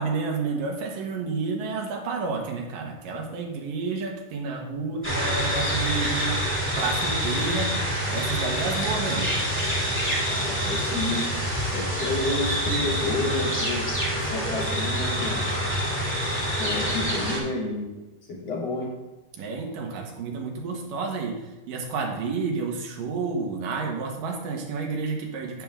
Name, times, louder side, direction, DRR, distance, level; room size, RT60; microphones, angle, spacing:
voice 1, 0.0-6.4 6.8-7.7 8.1-9.3 19.4-21.4 21.7-25.6, right 4 dB, 80° right, 0 dB, 3.0 m, -30 dB
sound 1, 5.0-17.4, equal, 5° left, 2.5 m, -26 dB
voice 2, 10.3-11.3 11.7-13.9 14.1-15.4 16.6-18.0 18.3-18.9, left 2 dB, 50° left, -6 dB, 3.9 m, -30 dB
11.0 x 8.9 x 3.6 m, 1.1 s
omnidirectional pair, 3.9 m